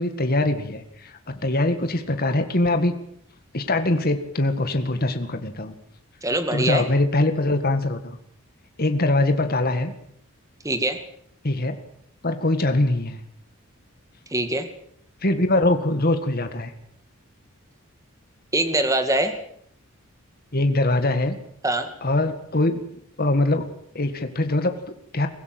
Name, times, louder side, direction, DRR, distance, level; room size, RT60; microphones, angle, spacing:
voice 1, 0.0-2.9 3.5-5.7 6.5-8.1 8.8-9.9 11.4-11.7 12.2-13.2 15.2-16.7 20.5-21.4 22.0-22.8 23.2-23.7 23.9-25.3, left 2 dB, 45° left, 8 dB, 2.0 m, -22 dB
voice 2, 6.2-6.8 10.6-11.0 14.3-14.7 18.5-19.4 21.6-21.9, right 1 dB, 15° right, 8 dB, 2.2 m, -23 dB
23.5 x 16.0 x 7.9 m, 0.67 s
head